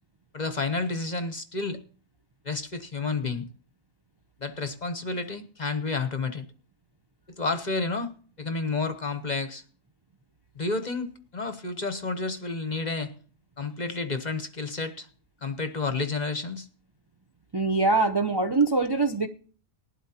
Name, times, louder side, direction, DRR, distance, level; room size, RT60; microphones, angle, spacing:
voice 1, 0.3-1.8 2.4-3.5 4.4-6.5 7.4-8.1 8.4-9.6 10.6-13.1 13.6-15.1 15.4-16.7, left 3 dB, 35° left, 0.9 m, -30 dB
voice 2, 17.5-19.3, right 3 dB, 30° right, 0.4 m, -23 dB
19.5 x 12.0 x 2.9 m
omnidirectional pair, 1.5 m